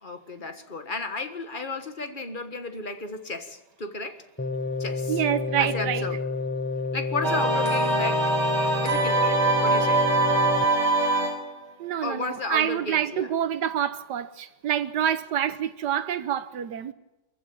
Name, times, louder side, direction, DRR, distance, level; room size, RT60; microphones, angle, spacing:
voice 1, 0.0-4.3 4.8-5.2 5.6-6.2 6.9-8.3 8.8-10.1 12.0-13.3, left 3 dB, 30° left, 1.6 m, -33 dB
sound 1, 4.4-10.6, left 4 dB, 15° left, 0.5 m, -29 dB
voice 2, 5.1-6.1 11.8-16.9, right 9 dB, 85° right, 1.5 m, -27 dB
sound 2, 7.2-11.5, right 2 dB, 20° right, 3.2 m, -23 dB
24.0 x 15.0 x 8.8 m
omnidirectional pair, 1.8 m